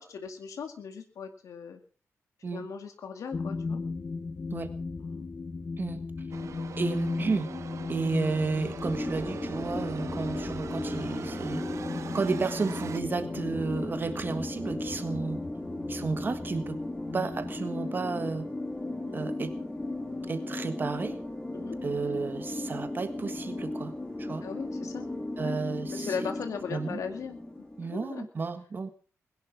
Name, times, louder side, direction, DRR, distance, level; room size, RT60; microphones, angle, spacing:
voice 1, 0.0-1.8 2.5-3.8 5.0-5.2 15.0-15.3 19.1-19.3 21.5-21.8 24.4-25.1 25.4-25.6 25.9-27.4 27.8-28.3, left 6 dB, 75° left, 6 dB, 2.2 m, -38 dB
sound 1, 3.3-17.6, left 4 dB, 35° left, 1.4 m, -37 dB
voice 2, 5.8-6.3 6.8-7.5 7.9-11.6 12.1-15.4 15.9-16.8 17.1-18.5 19.1-19.5 20.3-21.2 21.8-23.9 24.2-24.5 25.4-26.3 26.7-27.0 27.8-28.9, right 4 dB, 35° right, 9 dB, 1.6 m, -32 dB
sound 2, 6.3-13.0, right 7 dB, 65° right, 1.1 m, -43 dB
sound 3, 8.8-28.0, left 2 dB, 15° left, 3.6 m, -36 dB
21.5 x 11.0 x 6.0 m, 0.40 s
wide cardioid pair, 125°, 6 cm